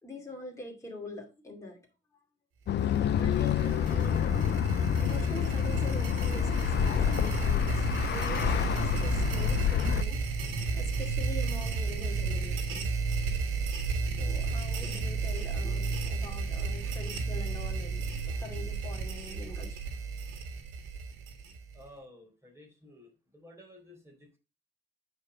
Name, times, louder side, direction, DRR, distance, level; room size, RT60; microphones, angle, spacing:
voice 1, 0.0-1.8 3.1-4.5 5.0-10.2 10.7-12.9 14.2-19.8, left 2 dB, 15° left, 2.5 m, -44 dB
sound 1, 2.7-10.0, left 10 dB, 60° left, 0.6 m, -28 dB
sound 2, 2.8-21.9, right 5 dB, 80° right, 1.6 m, -33 dB
sound 3, 3.8-19.1, equal, 40° left, 1.7 m, -40 dB
voice 2, 21.7-24.4, left 1 dB, 15° right, 4.3 m, -53 dB
8.4 x 4.7 x 5.1 m
cardioid pair, 90°, 20 cm